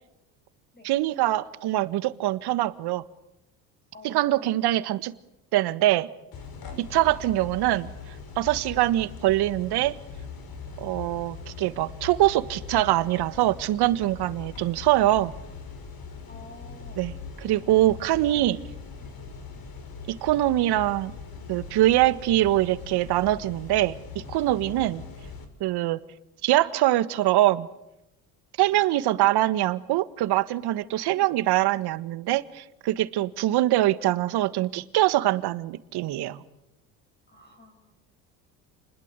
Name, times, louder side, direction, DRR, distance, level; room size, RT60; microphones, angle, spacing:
voice 1, 0.8-3.0 4.0-5.1 5.5-6.1 6.8-7.9 8.4-9.9 10.8-15.3 17.0-18.6 20.1-21.1 21.5-25.0 25.6-26.0 26.4-27.7 28.6-36.4, right 15 dB, 60° right, 15 dB, 1.6 m, -23 dB
voice 2, 3.9-4.7 7.1-7.2 16.3-17.0 18.3-18.4 19.0-19.2 28.7-29.5 31.1-31.3 37.3-37.9, left 2 dB, 20° left, 6 dB, 6.7 m, -50 dB
sound 1, 6.3-25.5, left 5 dB, 50° left, 6.0 m, -41 dB
30.0 x 21.0 x 8.3 m, 0.92 s
hypercardioid pair, 70°, 44 cm